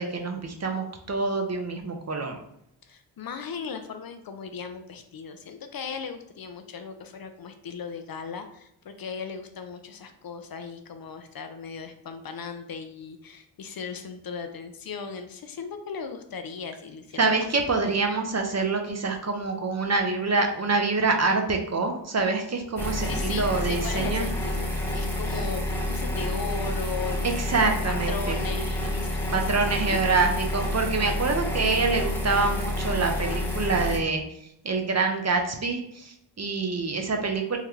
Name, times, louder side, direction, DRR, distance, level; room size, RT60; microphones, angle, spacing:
voice 1, 0.0-2.4 17.2-24.3 27.2-28.4 29.3-34.2 34.6-37.6, right 3 dB, 35° right, 3 dB, 0.7 m, -26 dB
voice 2, 2.8-17.3 23.0-27.2 27.9-29.6 29.9-30.0, left 5 dB, 50° left, 7 dB, 0.5 m, -37 dB
sound 1, 22.8-34.0, left 1 dB, 5° left, 1.1 m, -29 dB
3.7 x 2.2 x 3.1 m, 0.78 s
cardioid pair, 45°, 47 cm